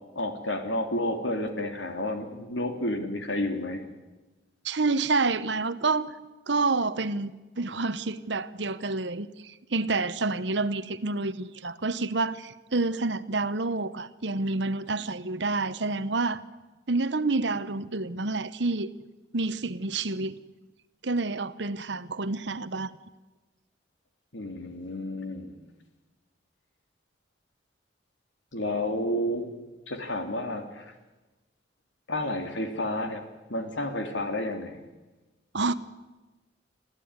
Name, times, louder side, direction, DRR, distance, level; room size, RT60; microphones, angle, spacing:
voice 1, 0.1-3.8 24.3-25.5 28.5-29.5 29.9-30.9 32.1-33.2 33.5-34.8, left 1 dB, 80° left, 3.0 m, -31 dB
voice 2, 4.6-6.2 6.5-16.4 16.9-18.9 19.3-20.4 21.0-22.9 35.5-35.7, right 3 dB, 70° right, 1.1 m, -28 dB
25.5 x 15.0 x 9.7 m
head